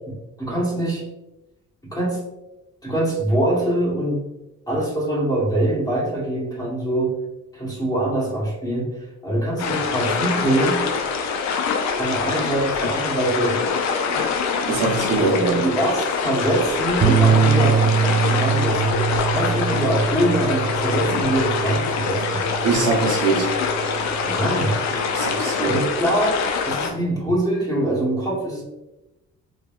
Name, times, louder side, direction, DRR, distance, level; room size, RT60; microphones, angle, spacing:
voice 1, 0.4-1.1 1.8-2.2 2.8-4.3 4.7-7.2 7.5-10.8 12.0-13.7 15.2-22.4 24.2-24.8 25.6-28.6, right 1 dB, 10° left, -4 dB, 1.0 m, -23 dB
sound 1, 9.6-26.9, left 5 dB, 65° left, 0.5 m, -24 dB
voice 2, 14.7-15.6 22.6-23.5 25.1-25.7, right 4 dB, 90° right, -2 dB, 0.8 m, -22 dB
sound 2, 17.0-25.4, right 7 dB, 35° right, 0.4 m, -23 dB
3.2 x 2.2 x 2.3 m, 0.98 s
cardioid pair, 90°, 30 cm